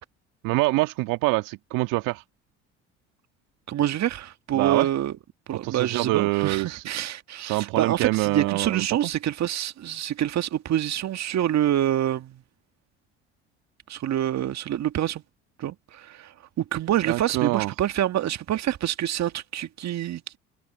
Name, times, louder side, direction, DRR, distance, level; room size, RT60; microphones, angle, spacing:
voice 1, 0.4-2.2 4.6-4.9 5.6-6.8 7.4-8.9 17.1-17.7, right 21 dB, 65° right, 1.7 m, -25 dB
voice 2, 3.7-5.2 5.5-12.4 13.9-15.2 15.6-20.2, right 11 dB, 50° right, 2.0 m, -26 dB
hypercardioid pair, 60°, 35 cm